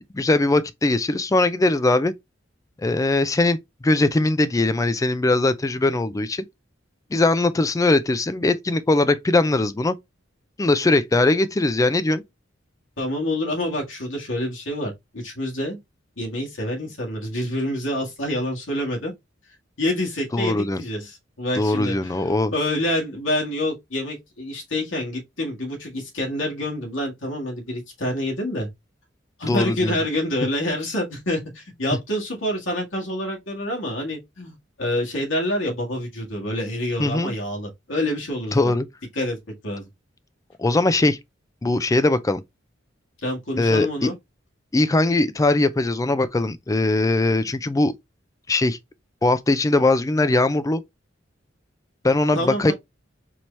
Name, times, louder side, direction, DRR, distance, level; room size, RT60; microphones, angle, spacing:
voice 1, 0.1-2.1 2.8-3.6 3.8-6.5 7.1-10.0 10.6-12.2 20.3-20.8 21.6-22.5 29.5-30.0 37.0-37.3 38.5-38.9 40.6-41.2 41.6-42.4 43.6-44.1 44.7-47.9 48.5-48.8 49.2-50.8 52.0-52.7, left 2 dB, 15° left, 0.4 m, -20 dB
voice 2, 13.0-15.8 16.2-19.1 19.8-22.2 22.5-28.7 29.4-38.7 39.1-39.4 39.6-39.9 43.2-44.1 52.3-52.7, left 1 dB, 75° left, 1.6 m, -27 dB
4.5 x 2.8 x 3.2 m
head